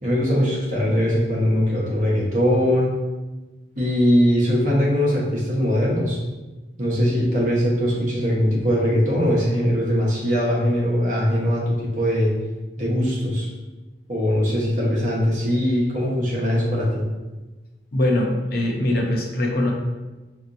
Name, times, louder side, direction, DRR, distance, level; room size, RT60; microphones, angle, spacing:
voice 1, 0.0-2.9 3.8-6.2 6.8-12.3 12.8-13.5 14.1-17.0, equal, 45° right, -4 dB, 1.1 m, -21 dB
voice 2, 17.9-19.7, left 1 dB, 55° left, 0 dB, 0.7 m, -22 dB
5.1 x 2.8 x 2.6 m, 1.2 s
head